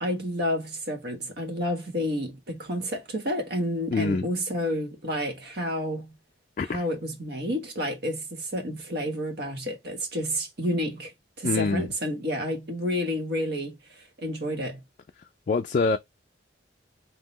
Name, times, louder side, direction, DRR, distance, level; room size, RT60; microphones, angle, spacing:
voice 1, 0.0-6.1 6.7-11.1 11.4-14.8, equal, 60° right, 1.3 m, -30 dB
voice 2, 3.9-4.3 6.6-6.8 11.4-11.9 15.5-16.0, left 4 dB, 45° left, 0.3 m, -25 dB
3.7 x 2.8 x 4.0 m
head